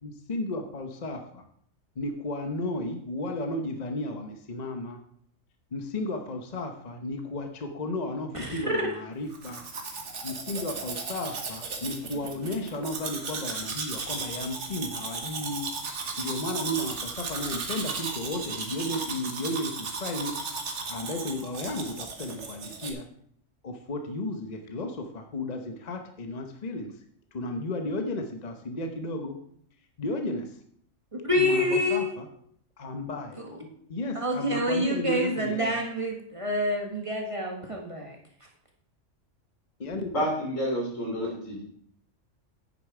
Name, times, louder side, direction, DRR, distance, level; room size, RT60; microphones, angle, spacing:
voice 1, 0.0-1.4 2.0-5.0 5.7-9.6 10.2-20.4 20.7-23.0 23.6-27.0 27.3-29.4 30.0-30.6 31.4-32.3 32.8-33.4 33.9-35.8 37.7-37.8 39.8-40.1, left 1 dB, 40° left, 5 dB, 0.8 m, -34 dB
voice 2, 8.3-8.9 31.1-32.1 34.1-38.2, left 1 dB, 25° right, 1 dB, 1.4 m, -27 dB
Domestic sounds home sounds, 9.3-22.9, right 4 dB, 65° right, 1.5 m, -35 dB
voice 3, 40.1-41.6, equal, 80° left, -2 dB, 3.3 m, -29 dB
8.9 x 6.8 x 4.8 m, 0.64 s
omnidirectional pair, 1.3 m